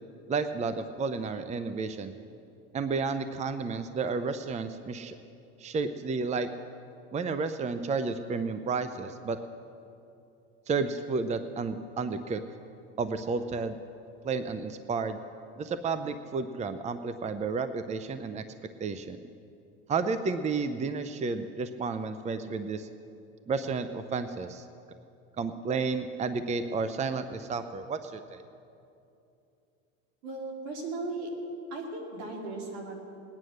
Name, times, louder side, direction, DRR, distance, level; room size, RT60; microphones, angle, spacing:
voice 1, 0.3-2.2 2.7-5.2 5.6-6.5 7.1-9.4 10.7-12.4 13.0-13.8 14.2-15.2 15.6-18.4 18.8-19.2 19.9-22.9 23.5-24.6 25.4-28.4, right 4 dB, 20° right, 11 dB, 0.7 m, -31 dB
voice 2, 30.2-31.3 31.7-32.9, right 3 dB, 80° right, 1 dB, 3.3 m, -37 dB
20.0 x 9.6 x 6.5 m, 2.7 s
supercardioid pair, 105°, 33 cm